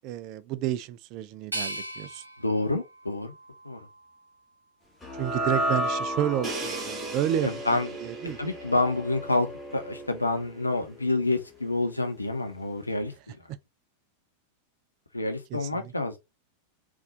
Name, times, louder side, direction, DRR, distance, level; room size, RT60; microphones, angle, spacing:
voice 1, 0.0-2.2 5.2-8.4 15.5-15.9, right 11 dB, 40° right, 0.5 m, -31 dB
sound 1, 1.5-4.4 5.0-5.8, right 1 dB, 80° right, 0.7 m, -40 dB
voice 2, 2.4-3.3 3.6-3.8 7.4-7.9 8.4-9.5 9.7-13.4 15.1-16.2, left 2 dB, 80° left, 0.9 m, -28 dB
sound 2, 5.0-11.4, equal, 10° left, 1.3 m, -33 dB
Crash cymbal, 6.4-10.2, right 4 dB, 25° right, 1.0 m, -40 dB
4.1 x 2.6 x 3.8 m
figure-of-eight pair, 90°, 0 cm